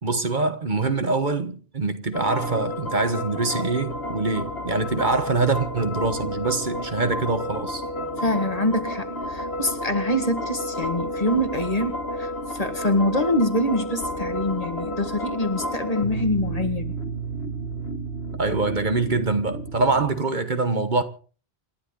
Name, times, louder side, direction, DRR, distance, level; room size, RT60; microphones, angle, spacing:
voice 1, 0.0-7.8 18.4-21.0, right 3 dB, 50° right, 1.4 m, -24 dB
sound 1, 2.1-20.1, equal, 75° left, 1.9 m, -31 dB
voice 2, 8.2-16.9, left 1 dB, 40° left, 1.9 m, -25 dB
28.0 x 11.5 x 3.8 m
omnidirectional pair, 1.0 m